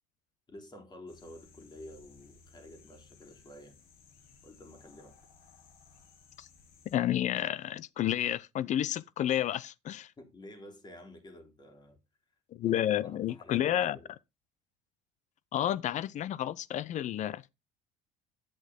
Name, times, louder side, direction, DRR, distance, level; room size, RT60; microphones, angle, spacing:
voice 1, 0.5-3.8 4.4-5.2 10.2-12.0 12.7-14.1, left 1 dB, 25° left, 3.7 m, -50 dB
sound 1, 1.1-7.0, left 5 dB, 70° left, 2.9 m, -59 dB
voice 2, 6.9-10.1 12.6-14.0 15.5-17.5, left 11 dB, 50° left, 0.7 m, -30 dB
10.5 x 8.1 x 3.8 m
supercardioid pair, 90°, 16 cm